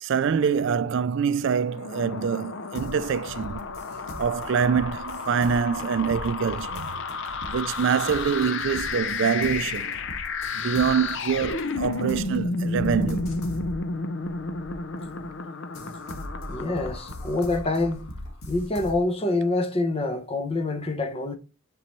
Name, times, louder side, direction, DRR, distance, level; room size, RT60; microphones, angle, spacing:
voice 1, 0.0-3.7 4.2-6.9 7.5-9.9 10.6-13.3, right 6 dB, 60° right, 0.3 m, -25 dB
sound 1, 1.6-17.9, left 4 dB, 60° left, 0.6 m, -32 dB
sound 2, 2.7-15.3 15.7-19.0, equal, 90° left, 1.9 m, -41 dB
voice 2, 16.5-18.1 18.5-21.4, left 2 dB, 25° left, 0.8 m, -26 dB
10.0 x 5.4 x 3.1 m
head